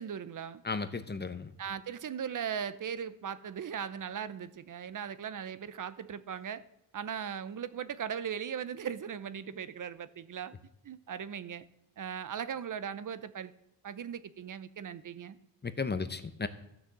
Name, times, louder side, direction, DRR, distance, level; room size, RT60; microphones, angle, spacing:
voice 1, 0.0-0.6 1.6-6.6 6.9-10.5 10.8-11.6 12.0-13.5 13.8-15.4, right 8 dB, 45° right, 16 dB, 0.7 m, -38 dB
voice 2, 0.6-1.5 15.6-16.5, left 4 dB, 25° left, 11 dB, 0.7 m, -34 dB
13.5 x 6.5 x 7.4 m, 0.84 s
cardioid pair, 105°, 44 cm